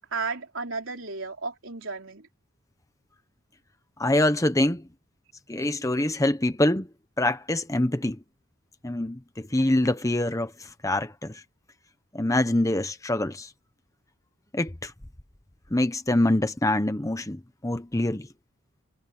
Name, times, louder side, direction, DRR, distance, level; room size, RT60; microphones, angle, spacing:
voice 1, 0.1-2.2, right 4 dB, 65° right, 4.0 m, -33 dB
voice 2, 4.0-4.8 5.5-6.9 7.2-8.2 8.8-11.4 12.1-13.5 14.5-14.9 15.7-18.3, left 1 dB, 15° left, 0.9 m, -25 dB
head